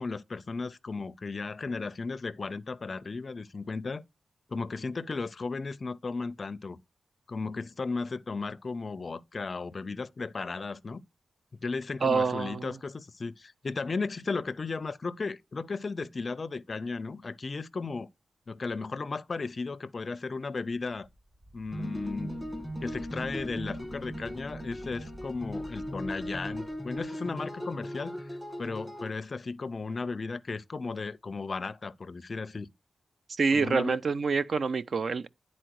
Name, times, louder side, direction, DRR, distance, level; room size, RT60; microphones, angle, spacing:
voice 1, 0.0-4.0 4.5-6.8 7.3-11.0 11.6-18.1 18.5-21.1 21.5-22.4 22.8-28.2 28.6-32.7 33.5-34.0, left 4 dB, 40° left, 0.5 m, -35 dB
voice 2, 12.0-12.8 33.3-35.3, right 4 dB, 55° right, 0.5 m, -27 dB
Wind, 21.0-27.0, right 1 dB, 35° right, 4.2 m, -50 dB
sound 1, 21.7-29.1, equal, 5° right, 1.5 m, -38 dB
10.0 x 4.2 x 4.6 m
wide cardioid pair, 140°, 0 cm